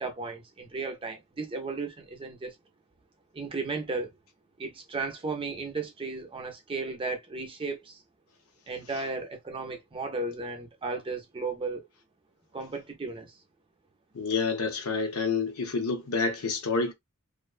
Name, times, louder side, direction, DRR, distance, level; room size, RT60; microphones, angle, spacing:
voice 1, 0.0-2.5 3.3-4.1 4.6-8.0 8.7-11.9 12.5-13.4, right 3 dB, 25° right, 0.5 m, -35 dB
voice 2, 14.1-16.9, left 4 dB, 75° left, 0.7 m, -28 dB
2.5 x 2.1 x 2.3 m
head